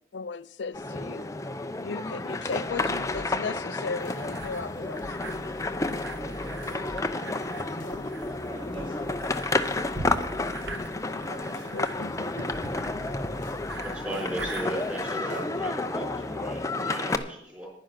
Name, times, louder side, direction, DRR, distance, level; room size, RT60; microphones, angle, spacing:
voice 1, 0.1-1.3 1.8-5.2 7.6-8.1 11.2-11.4 11.7-12.3 14.1-14.2, left 4 dB, 65° left, 0.5 m, -37 dB
sound 1, 0.7-17.2, left 2 dB, 15° left, 0.6 m, -31 dB
sound 2, 2.7-16.7, left 1 dB, 40° left, 1.0 m, -48 dB
sound 3, 4.0-15.2, right 2 dB, 65° right, 1.3 m, -43 dB
voice 2, 6.2-7.5 8.4-10.7 11.1-12.5 12.8-13.1, right 2 dB, 30° right, 3.4 m, -47 dB
voice 3, 13.8-17.7, equal, 10° right, 4.3 m, -36 dB
10.5 x 10.0 x 5.8 m
head